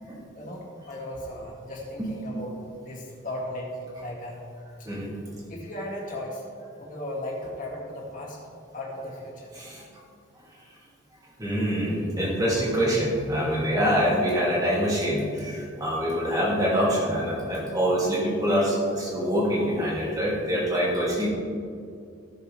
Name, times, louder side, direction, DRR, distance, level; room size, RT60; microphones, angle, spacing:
voice 1, 0.3-4.4 4.8-4.9 5.5-6.4 6.8-8.4 8.7-9.5, left 1 dB, 40° left, -3 dB, 2.2 m, -36 dB
voice 2, 2.0-2.4 4.0-4.1 4.8-5.1 9.5-9.8 11.4-21.3, equal, 20° right, -6 dB, 2.6 m, -25 dB
16.5 x 6.7 x 3.4 m, 2.4 s
head